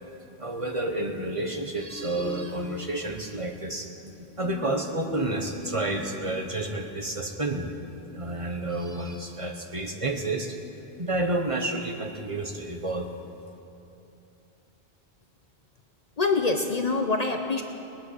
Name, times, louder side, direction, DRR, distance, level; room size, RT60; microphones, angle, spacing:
voice 1, 0.4-7.7 8.1-10.6 11.0-13.1, right 2 dB, 30° right, 2 dB, 1.0 m, -30 dB
sound 1, 1.9-3.2 4.4-6.6, left 2 dB, 5° left, 1.2 m, -40 dB
voice 2, 16.2-17.6, left 3 dB, 40° left, 4 dB, 0.8 m, -25 dB
20.5 x 8.5 x 6.4 m, 2.8 s
omnidirectional pair, 1.1 m